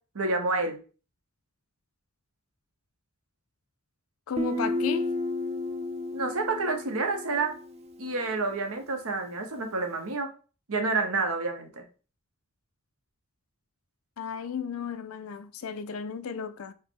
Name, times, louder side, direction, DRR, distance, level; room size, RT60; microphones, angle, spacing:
voice 1, 0.1-0.8 6.1-7.6 8.0-10.3 10.7-11.8, right 3 dB, 85° right, 1.0 m, -29 dB
voice 2, 4.3-5.1 14.2-16.7, left 6 dB, 75° left, 0.5 m, -34 dB
Guitar, 4.4-8.0, left 2 dB, 30° right, 0.5 m, -32 dB
4.8 x 2.2 x 4.5 m
head